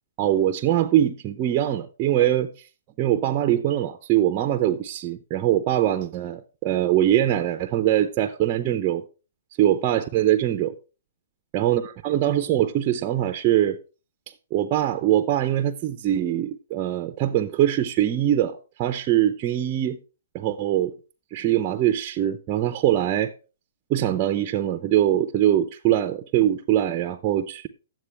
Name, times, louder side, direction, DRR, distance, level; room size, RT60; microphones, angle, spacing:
voice 1, 0.2-2.5 3.0-9.0 9.6-10.7 11.5-13.8 14.5-20.0 20.3-20.9 21.3-23.3 23.9-27.7, right 12 dB, 25° right, 0.5 m, -22 dB
11.0 x 7.6 x 3.3 m
hypercardioid pair, 160°, 0 cm